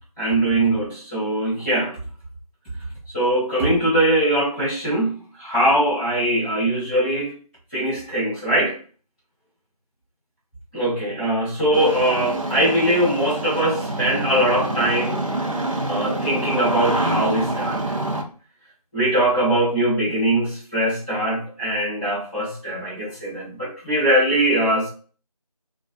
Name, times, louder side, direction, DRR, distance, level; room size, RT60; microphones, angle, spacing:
voice 1, 0.2-2.0 3.1-7.3 7.7-8.8 10.7-15.2 15.9-18.0 18.9-24.9, right 1 dB, 15° right, -11 dB, 1.2 m, -21 dB
Engine starting, 11.7-18.2, right 1 dB, 55° right, 0.6 m, -26 dB
2.4 x 2.3 x 2.4 m, 0.40 s
figure-of-eight pair, 175°, 20 cm